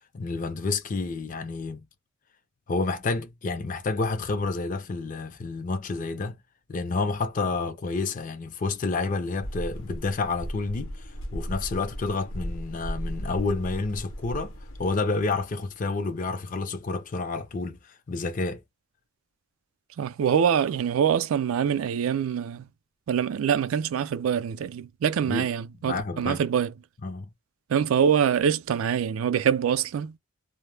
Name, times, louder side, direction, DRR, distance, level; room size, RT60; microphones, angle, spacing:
voice 1, 0.1-1.9 2.7-6.4 6.7-14.5 14.8-18.6 25.3-25.5 25.8-26.4 27.0-27.3, left 3 dB, 40° left, 0.4 m, -29 dB
sound 1, 9.4-14.9, equal, 75° left, 0.7 m, -36 dB
voice 2, 20.0-22.7 23.1-26.7 27.7-30.1, right 8 dB, 75° right, 0.3 m, -24 dB
2.1 x 2.0 x 3.1 m
head